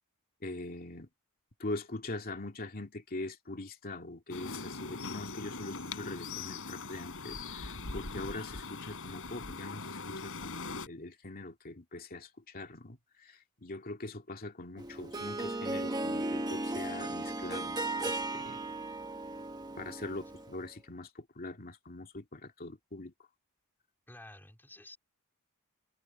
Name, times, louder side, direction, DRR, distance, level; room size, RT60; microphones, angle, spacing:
voice 1, 0.4-1.1 1.6-17.8 18.0-18.6 19.8-23.1, left 2 dB, 45° left, 2.4 m, -42 dB
sound 1, 4.3-10.9, left 3 dB, 65° left, 4.0 m, -41 dB
Harp, 14.8-20.6, right 2 dB, 20° right, 1.3 m, -36 dB
voice 2, 24.1-25.0, left 1 dB, 10° left, 3.9 m, -51 dB
head